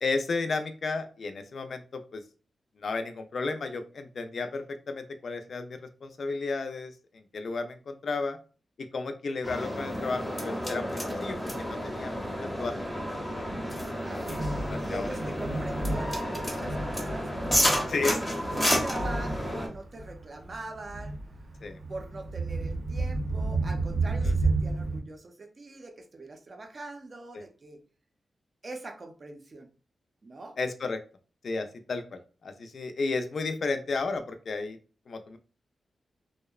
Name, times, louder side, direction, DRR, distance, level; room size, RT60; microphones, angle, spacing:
voice 1, 0.0-2.2 2.8-8.4 8.9-12.8 13.3-13.4 14.3-14.4 14.7-15.1 17.9-18.2 21.6-21.8 24.2-24.3 27.3-27.4 30.6-31.0 31.4-34.8 35.1-35.4, left 3 dB, 55° left, 8 dB, 0.3 m, -33 dB
sound 1, 9.4-19.7, equal, 15° left, 0.6 m, -31 dB
Thunder, 11.3-25.0, right 2 dB, 90° right, 0.8 m, -33 dB
voice 2, 13.9-14.3 14.8-21.2 21.9-27.8 28.6-29.7 30.2-30.6, right 2 dB, 40° right, 4 dB, 0.5 m, -43 dB
2.6 x 2.1 x 2.3 m, 0.37 s
wide cardioid pair, 125°, 0 cm